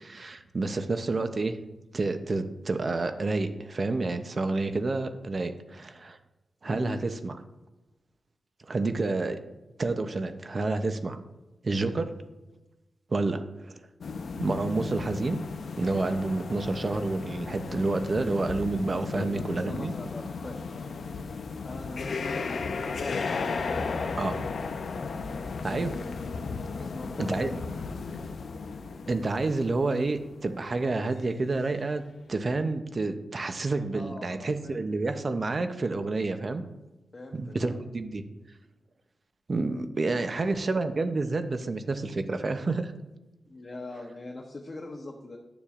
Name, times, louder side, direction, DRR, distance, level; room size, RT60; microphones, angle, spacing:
voice 1, 0.0-1.6 1.9-6.2 6.6-7.4 8.7-9.4 9.8-11.2 11.6-12.1 13.1-13.8 14.4-15.4 15.8-19.9 24.2-24.4 25.6-25.9 27.3-27.5 29.1-32.0 32.3-36.6 37.3-38.2 39.5-42.9, right 3 dB, 35° right, 8 dB, 0.6 m, -29 dB
voice 2, 6.7-7.0 19.1-20.6 21.6-23.2 23.8-24.4 26.7-27.5 33.9-34.8 37.1-37.8 40.0-40.4 43.5-45.4, left 2 dB, 30° left, 1 dB, 0.8 m, -41 dB
sound 1, 14.0-30.6 31.1-31.2 31.7-31.8, left 4 dB, 60° left, 0.5 m, -35 dB
11.5 x 7.0 x 2.4 m, 1.1 s
wide cardioid pair, 175°, 0 cm